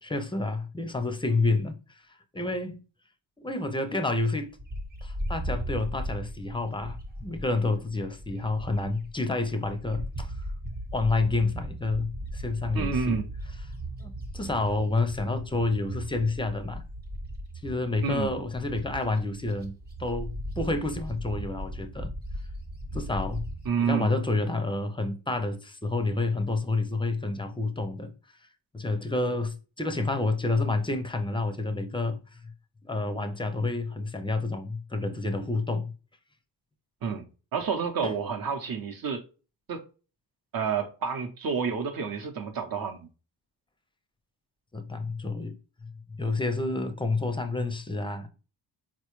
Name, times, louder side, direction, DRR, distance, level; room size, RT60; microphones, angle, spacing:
voice 1, 0.0-1.8 2.3-2.8 3.4-4.5 5.0-7.0 7.2-10.3 10.9-13.2 14.0-16.8 17.6-22.1 22.9-23.5 23.8-28.1 28.7-32.4 32.8-35.9 38.0-38.2 44.7-45.6 45.8-48.3, left 3 dB, 10° left, 0.4 m, -29 dB
Bird, 4.6-9.1 9.5-23.7, right 1 dB, 20° right, 0.8 m, -37 dB
voice 2, 12.7-13.3 18.0-18.3 23.7-24.1 37.0-37.3 37.5-39.2 39.7-39.8 40.5-43.1, right 6 dB, 55° right, 0.7 m, -29 dB
4.1 x 2.2 x 3.0 m
cardioid pair, 85°, 42 cm